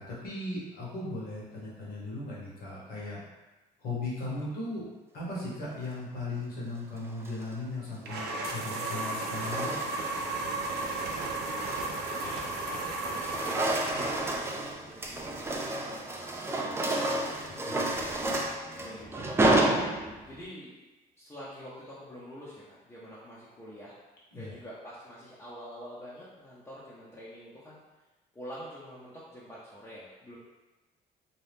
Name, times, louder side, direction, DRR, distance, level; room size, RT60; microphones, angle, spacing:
voice 1, 0.0-3.2 3.8-4.9 5.1-9.8 24.3-24.5, left 2 dB, 60° left, -6 dB, 1.2 m, -37 dB
sound 1, 7.0-7.5 8.6-10.2 10.6-10.9 11.4-12.8 13.1-20.4, right 1 dB, 15° right, 0.3 m, -31 dB
sound 2, 8.1-14.6, right 2 dB, 75° right, 0.6 m, -34 dB
voice 2, 11.2-18.3 18.8-19.8 20.3-20.8 21.2-24.0 24.3-27.8 28.3-30.4, equal, 15° left, -10 dB, 0.6 m, -47 dB
2.7 x 2.3 x 3.4 m, 1.1 s
cardioid pair, 110°, 17 cm